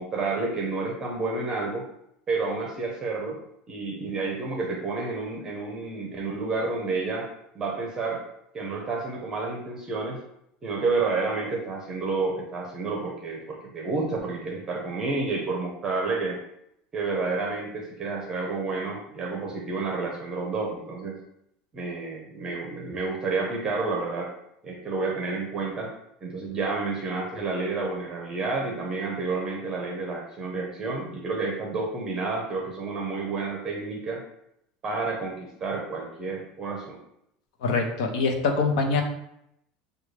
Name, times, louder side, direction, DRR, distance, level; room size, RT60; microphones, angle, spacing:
voice 1, 0.0-1.8 2.3-3.4 3.7-7.3 7.5-8.2 8.5-10.2 10.6-16.4 16.9-21.2 21.7-24.3 24.6-25.9 26.2-34.2 34.8-37.0, right 3 dB, 20° right, -1 dB, 0.7 m, -30 dB
voice 2, 37.6-39.0, left 4 dB, 75° left, 4 dB, 0.8 m, -24 dB
6.3 x 2.3 x 3.2 m, 0.78 s
cardioid pair, 165°, 3 cm